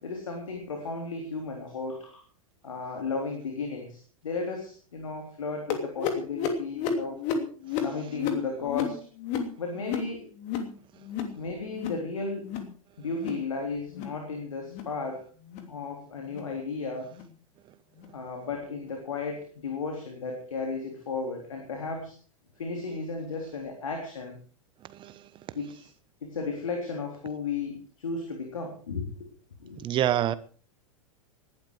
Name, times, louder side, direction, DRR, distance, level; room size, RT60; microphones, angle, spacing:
voice 1, 0.0-2.2 2.6-7.2 7.8-9.1 9.6-10.3 11.4-12.5 13.0-15.3 15.7-17.1 18.1-22.2 22.6-24.4 25.6-25.9 26.2-29.3 29.6-29.8, left 4 dB, 65° left, 3.6 m, -34 dB
sound 1, 5.7-10.7 11.0-11.4 11.7-12.1 12.4-12.7 13.1-13.5 13.9-14.2 14.6-14.9 15.4-15.7 16.3-16.5 17.1-17.3 18.0-18.1 18.9-19.0, left 6 dB, 40° left, 2.9 m, -32 dB
voice 2, 29.8-30.4, right 11 dB, 30° right, 1.1 m, -25 dB
19.0 x 12.0 x 4.8 m
figure-of-eight pair, 90°, 18 cm